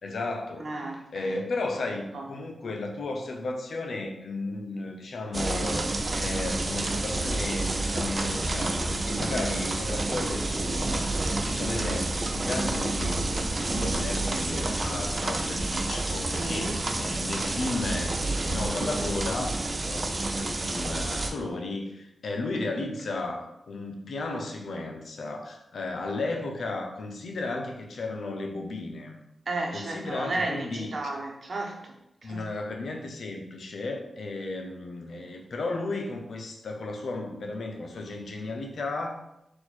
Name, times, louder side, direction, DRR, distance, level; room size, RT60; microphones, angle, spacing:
voice 1, 0.0-0.7 1.1-19.6 19.8-29.2 29.7-30.9 32.2-39.2, left 2 dB, 75° left, 3 dB, 0.6 m, -34 dB
voice 2, 0.6-1.4 2.1-2.2 16.3-16.8 29.5-31.9 32.2-32.4, right 2 dB, 60° right, 0 dB, 1.0 m, -33 dB
sound 1, 5.3-21.3, right 2 dB, 45° right, 0.5 m, -29 dB
4.2 x 2.5 x 4.3 m, 0.85 s
cardioid pair, 50°, 0 cm